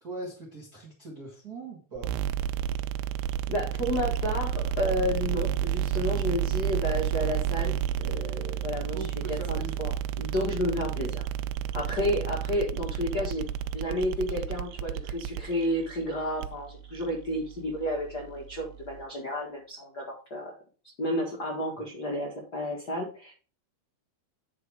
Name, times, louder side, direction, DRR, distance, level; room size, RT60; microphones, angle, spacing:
voice 1, 0.0-2.1 8.9-9.9, right 2 dB, 55° right, -1 dB, 1.0 m, -40 dB
sound 1, 2.0-19.0, right 10 dB, 85° right, 2.6 m, -31 dB
voice 2, 3.5-11.2 11.7-13.5 13.7-20.5 20.8-23.3, left 1 dB, 75° left, -1 dB, 0.9 m, -31 dB
9.6 x 4.3 x 4.8 m, 0.39 s
omnidirectional pair, 4.5 m